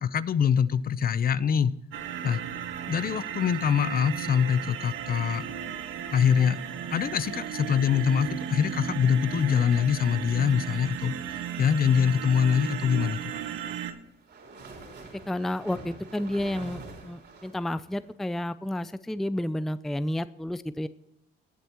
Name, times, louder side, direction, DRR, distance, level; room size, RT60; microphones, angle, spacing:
voice 1, 0.0-1.7 2.2-2.4 2.9-5.5 6.1-6.6 6.9-11.1 11.6-13.3, left 7 dB, 50° left, 16 dB, 0.7 m, -24 dB
sound 1, 1.9-13.9, right 9 dB, 85° right, 1.1 m, -35 dB
sound 2, 13.0-18.1, right 3 dB, 60° right, 3.7 m, -46 dB
voice 2, 15.3-20.9, left 1 dB, ahead, 14 dB, 0.4 m, -31 dB
18.5 x 8.0 x 3.0 m, 0.84 s
cardioid pair, 90°, 20 cm